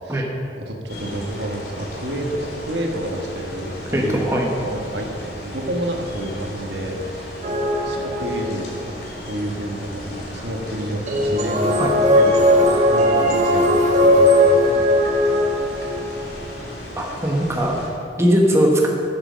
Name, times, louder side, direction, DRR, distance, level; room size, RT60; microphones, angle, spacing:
voice 1, 0.5-4.3 4.5-7.3 7.8-11.8 12.2-14.8 15.7-15.9, right 1 dB, 75° right, 1 dB, 1.5 m, -29 dB
sound 1, 0.9-17.9, equal, 60° left, 3.1 m, -35 dB
voice 2, 3.9-4.5 11.8-11.9 17.0-17.8 18.2-18.9, equal, 15° right, -1 dB, 1.2 m, -19 dB
sound 2, 7.4-8.8 11.1-16.3, equal, 40° right, 1.3 m, -18 dB
10.5 x 8.1 x 6.4 m, 2.6 s
head